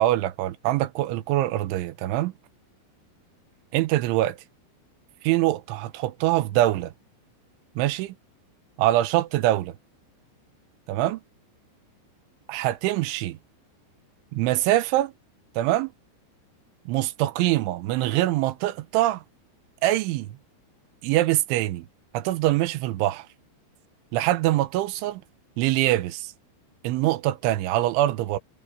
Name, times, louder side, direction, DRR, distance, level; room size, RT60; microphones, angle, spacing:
voice 1, 0.0-2.3 3.7-4.3 5.2-6.9 7.8-8.1 8.8-9.7 10.9-11.2 12.5-13.4 14.3-15.1 15.6-15.9 16.9-19.2 19.8-20.4 21.0-21.9 22.1-23.3 24.1-25.2 25.6-26.3 26.8-28.4, right 15 dB, 80° right, 3.2 m, -24 dB
omnidirectional pair, 5.6 m